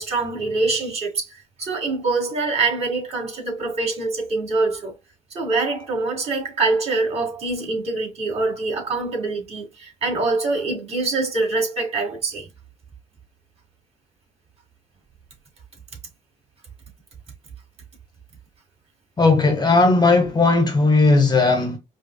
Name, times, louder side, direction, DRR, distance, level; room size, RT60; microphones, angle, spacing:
voice 1, 0.0-4.9 5.3-12.5, right 3 dB, 40° right, 2.1 m, -24 dB
voice 2, 19.2-21.8, left 3 dB, 25° left, 0.9 m, -16 dB
5.0 x 2.3 x 2.3 m
cardioid pair, 110°, 17 cm